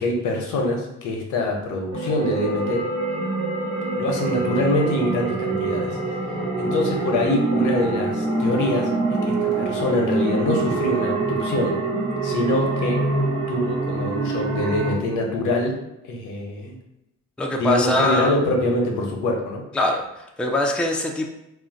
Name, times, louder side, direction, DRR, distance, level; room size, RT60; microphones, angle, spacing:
voice 1, 0.0-2.8 3.9-6.0 6.6-11.7 12.2-13.0 13.5-15.7 16.0-16.8 17.5-19.6, left 1 dB, 85° left, 1 dB, 0.7 m, -24 dB
sound 1, 1.9-14.9, right 3 dB, 50° right, 1.1 m, -25 dB
voice 2, 17.4-18.3 19.7-21.3, left 2 dB, 5° left, 1 dB, 0.3 m, -22 dB
2.4 x 2.1 x 3.9 m, 0.89 s
cardioid pair, 90°, 30 cm